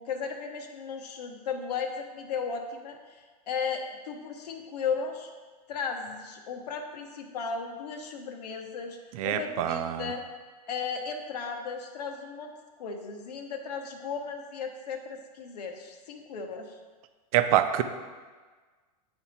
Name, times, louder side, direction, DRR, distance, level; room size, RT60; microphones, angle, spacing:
voice 1, 0.0-5.3 5.7-9.0 9.2-10.2 10.7-12.5 12.8-16.8, left 5 dB, 80° left, 4 dB, 1.0 m, -35 dB
voice 2, 9.1-10.1 17.3-17.8, right 11 dB, 60° right, 9 dB, 0.6 m, -25 dB
8.9 x 3.5 x 4.2 m, 1.4 s
hypercardioid pair, 130°, 20 cm